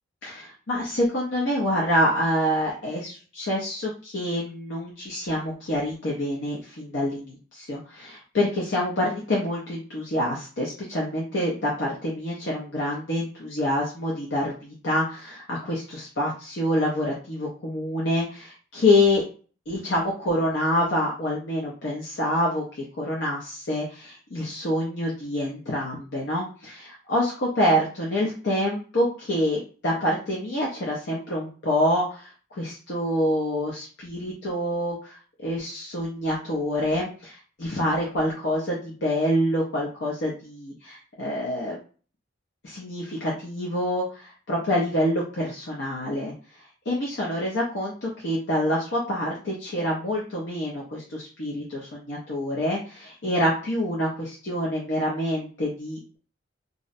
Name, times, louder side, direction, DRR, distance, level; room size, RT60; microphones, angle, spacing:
voice 1, 0.2-19.2 19.7-22.6 23.0-41.8 42.6-46.3 46.9-56.2, left 1 dB, 65° left, -3 dB, 0.6 m, -26 dB
2.6 x 2.0 x 2.5 m, 0.40 s
head